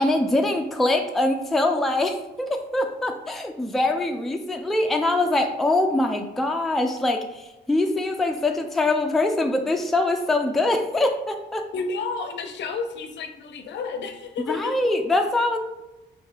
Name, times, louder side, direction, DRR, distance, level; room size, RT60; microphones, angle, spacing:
voice 1, 0.0-11.7 14.5-15.6, left 2 dB, ahead, 4 dB, 0.3 m, -23 dB
voice 2, 11.7-15.0, left 4 dB, 65° left, 7 dB, 0.5 m, -31 dB
3.3 x 2.6 x 3.6 m, 1.0 s
cardioid pair, 90°, 20 cm